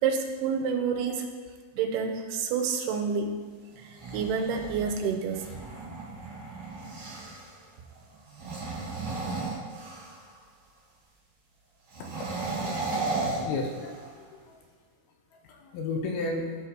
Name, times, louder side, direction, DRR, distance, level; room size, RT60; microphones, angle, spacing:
voice 1, 0.0-1.3 1.7-3.4 3.8-5.5, right 6 dB, 85° right, 4 dB, 2.6 m, -28 dB
sound 1, 3.8-7.5 8.3-10.3 11.9-14.2, right 3 dB, 45° right, 2.5 m, -35 dB
voice 2, 12.4-12.8 13.1-14.4 15.4-16.5, left 3 dB, 80° left, 2 dB, 2.6 m, -34 dB
12.5 x 4.2 x 4.4 m, 1.5 s
omnidirectional pair, 4.7 m